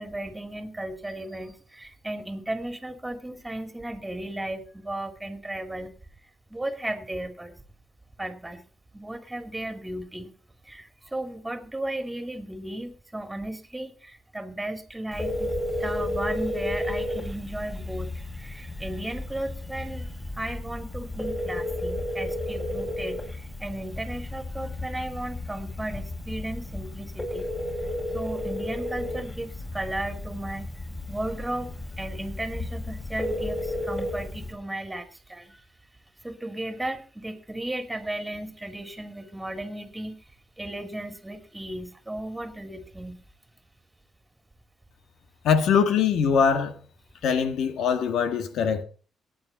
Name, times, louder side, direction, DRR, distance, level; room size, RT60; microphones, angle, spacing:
voice 1, 0.0-5.9 6.2-7.6 8.2-8.6 8.9-10.3 10.6-15.5 15.8-27.5 27.8-31.7 32.0-35.6 36.2-40.2 40.6-43.2, right 1 dB, 10° right, 2.8 m, -35 dB
Telephone, 15.1-34.5, left 1 dB, 25° left, 6.0 m, -33 dB
voice 2, 45.4-46.7 47.2-48.8, left 6 dB, 80° left, 1.8 m, -22 dB
19.0 x 9.0 x 4.1 m
cardioid pair, 80°, 0 cm